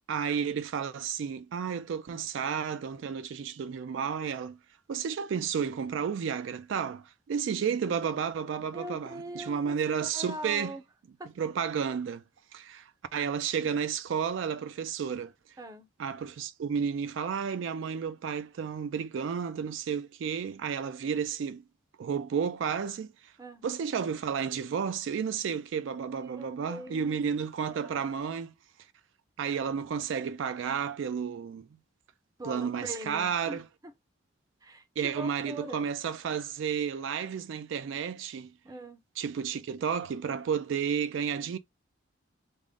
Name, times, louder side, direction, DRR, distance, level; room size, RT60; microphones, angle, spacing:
voice 1, 0.1-4.6 4.9-10.7 11.4-12.2 12.5-15.3 16.0-21.6 22.0-23.3 23.6-28.5 29.4-31.7 32.4-33.6 35.0-38.5 39.2-41.6, right 7 dB, 70° right, 0.3 m, -32 dB
voice 2, 8.7-10.8 11.2-11.4 15.6-15.9 23.4-23.6 26.2-27.2 27.7-28.0 32.4-33.9 34.6-35.8 38.6-39.0, right 1 dB, 20° right, 0.5 m, -42 dB
3.5 x 2.0 x 3.7 m
head